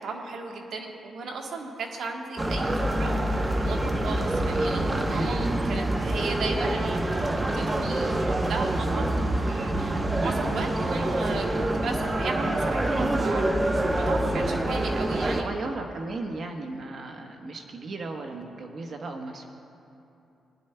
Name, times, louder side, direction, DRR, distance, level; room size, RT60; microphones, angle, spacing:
voice 1, 0.0-9.0 9.4-13.4 14.0-15.5, right 4 dB, 75° right, 2 dB, 1.2 m, -35 dB
sound 1, 2.4-15.4, right 1 dB, 25° right, 0.8 m, -26 dB
voice 2, 5.0-5.4 15.2-19.5, right 3 dB, 55° right, 3 dB, 1.1 m, -36 dB
21.0 x 11.0 x 2.2 m, 2.7 s
cardioid pair, 90°, 0 cm